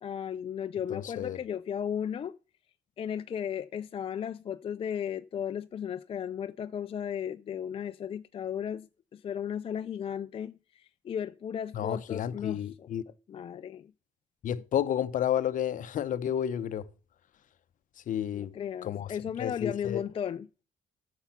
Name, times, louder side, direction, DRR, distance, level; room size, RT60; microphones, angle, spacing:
voice 1, 0.0-2.4 3.0-12.9 13.3-13.9 18.3-20.5, left 8 dB, 35° left, 0.4 m, -35 dB
voice 2, 0.9-1.4 11.7-13.0 14.4-16.9 18.1-18.5 18.8-19.1 19.4-20.0, left 10 dB, 50° left, 0.8 m, -31 dB
10.0 x 6.9 x 5.8 m
cardioid pair, 110°, 17 cm